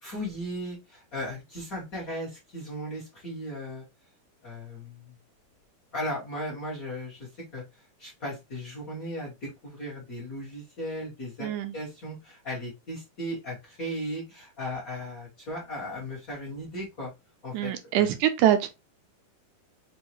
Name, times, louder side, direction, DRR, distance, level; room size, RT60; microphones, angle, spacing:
voice 1, 0.0-3.8 4.4-5.1 5.9-17.1 17.4-18.2, equal, 50° left, 1.1 m, -37 dB
voice 2, 11.4-11.7 17.5-18.7, right 11 dB, 80° right, 1.8 m, -24 dB
5.4 x 2.3 x 2.9 m
omnidirectional pair, 3.7 m